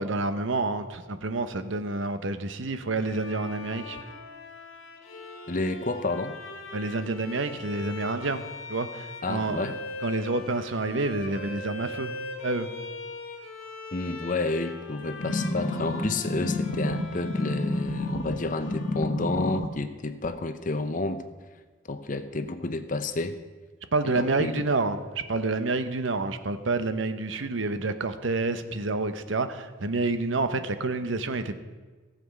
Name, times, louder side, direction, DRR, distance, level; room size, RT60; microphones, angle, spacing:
voice 1, 0.0-4.0 6.7-8.4 8.7-9.6 10.0-12.1 12.4-12.7 23.9-31.6, right 3 dB, 65° right, 10 dB, 0.8 m, -28 dB
Bowed string instrument, 2.9-19.5, left 3 dB, 80° left, 1.6 m, -41 dB
voice 2, 5.5-6.3 9.2-9.8 13.9-21.2 21.9-23.4 24.0-24.7, left 2 dB, 40° left, 10 dB, 0.7 m, -30 dB
sound 1, 15.2-18.4 18.7-19.7 20.2-20.3, left 2 dB, 60° left, 1.4 m, -29 dB
14.0 x 7.7 x 6.4 m, 1.4 s
head